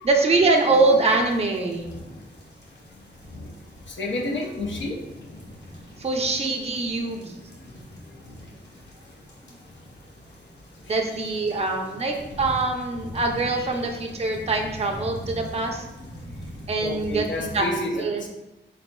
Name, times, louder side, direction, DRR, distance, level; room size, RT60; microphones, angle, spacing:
voice 1, 0.0-1.9 6.0-7.4 10.9-15.8 16.7-17.7 18.0-18.2, right 3 dB, 35° right, 1 dB, 0.5 m, -23 dB
sound 1, 0.5-17.7, left 1 dB, 65° left, 1.4 m, -42 dB
voice 2, 3.9-5.0 11.5-11.7 13.5-13.6 16.8-18.3, left 1 dB, 85° left, 0 dB, 0.7 m, -30 dB
4.1 x 4.0 x 2.2 m, 0.97 s
wide cardioid pair, 65°, 19 cm